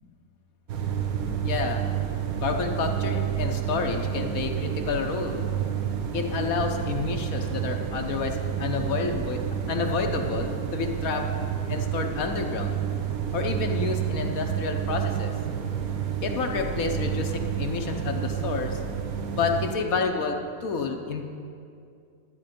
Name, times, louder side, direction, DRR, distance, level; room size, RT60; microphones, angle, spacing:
sound 1, 0.7-19.7, right 8 dB, 65° right, 1.2 m, -29 dB
voice 1, 1.4-1.9 2.4-5.5 6.1-9.4 9.7-11.3 11.7-12.8 13.3-15.3 16.2-18.8 19.3-21.2, left 5 dB, 65° left, 4 dB, 1.1 m, -29 dB
12.0 x 8.5 x 5.1 m, 2.4 s
omnidirectional pair, 1.7 m